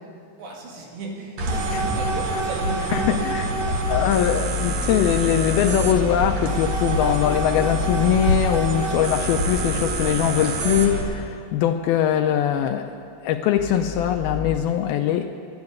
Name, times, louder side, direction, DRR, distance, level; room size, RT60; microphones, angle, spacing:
voice 1, 0.4-3.9, right 2 dB, 90° right, 0 dB, 4.2 m, -35 dB
sound 1, 1.4-11.0, right 2 dB, 55° right, 2.1 m, -26 dB
voice 2, 2.9-12.9 13.2-15.3, left 10 dB, 80° left, 6 dB, 2.2 m, -22 dB
sound 2, 3.8-10.1 10.7-11.3 13.6-14.6, left 4 dB, 60° left, 1.4 m, -30 dB
13.0 x 9.7 x 9.6 m, 2.3 s
omnidirectional pair, 4.8 m